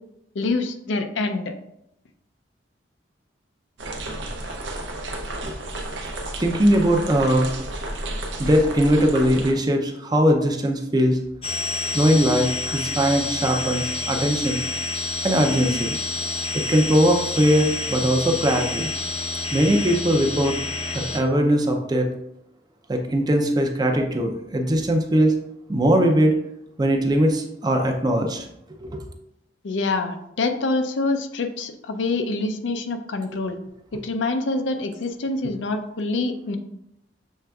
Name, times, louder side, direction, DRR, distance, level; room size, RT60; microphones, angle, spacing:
voice 1, 0.4-1.5 29.6-33.6 33.9-36.6, left 3 dB, 85° left, 7 dB, 0.5 m, -26 dB
sound 1, 3.8-9.5, right 2 dB, 85° right, 0.6 m, -32 dB
voice 2, 6.4-7.5 8.4-11.2 11.9-14.6 15.2-15.9 16.7-18.9 19.5-20.6 20.9-22.1 22.9-25.3 25.7-26.4 26.8-28.4 28.7-29.0, equal, 20° right, 3 dB, 0.5 m, -20 dB
sound 2, 11.4-21.2, left 3 dB, 30° left, 0.6 m, -28 dB
6.4 x 3.3 x 2.3 m, 0.79 s
head